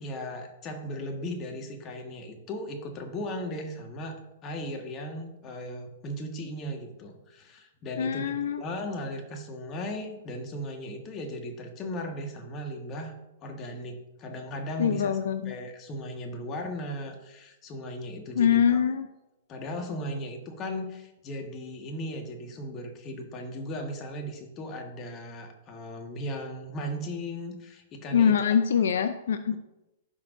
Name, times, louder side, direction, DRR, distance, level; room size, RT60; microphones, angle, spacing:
voice 1, 0.0-13.1 13.4-15.2 15.4-18.8 19.5-28.4, equal, 30° left, 4 dB, 1.6 m, -37 dB
voice 2, 8.0-8.6 14.8-15.5 18.3-19.1 28.1-29.6, left 8 dB, 75° left, 11 dB, 0.5 m, -24 dB
15.5 x 6.0 x 2.7 m, 0.96 s
hypercardioid pair, 125°, 0 cm